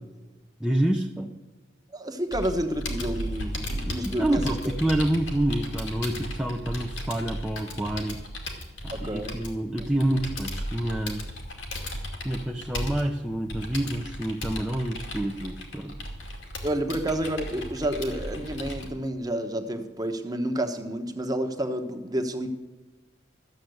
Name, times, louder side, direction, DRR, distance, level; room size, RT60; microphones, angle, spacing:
voice 1, 0.6-1.3 4.0-8.2 8.8-11.3 12.2-15.9, right 1 dB, 5° right, 1 dB, 0.6 m, -28 dB
voice 2, 1.9-4.4 8.9-9.3 16.6-22.5, right 1 dB, 20° right, 6 dB, 1.1 m, -30 dB
Computer keyboard, 2.3-18.9, left 1 dB, 85° left, 2.3 m, -35 dB
13.0 x 7.3 x 7.9 m, 1.2 s
head